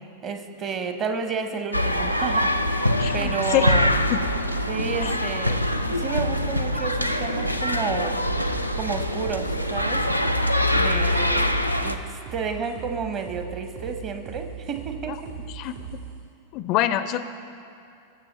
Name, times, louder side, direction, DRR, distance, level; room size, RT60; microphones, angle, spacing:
voice 1, 0.2-3.9 4.7-5.6 5.9-8.2 8.7-10.4 10.7-15.3, right 5 dB, 30° right, 7 dB, 0.9 m, -31 dB
sound 1, 1.7-12.0, left 1 dB, 90° right, 0.4 m, -24 dB
voice 2, 3.0-3.8 4.1-4.2 5.0-5.2 15.1-15.2 15.5-15.8 16.5-17.2, left 12 dB, 40° left, 12 dB, 0.4 m, -25 dB
sound 2, 8.3-16.0, right 6 dB, 50° right, 2.7 m, -39 dB
19.5 x 6.9 x 4.1 m, 2.5 s
figure-of-eight pair, 90°, 0 cm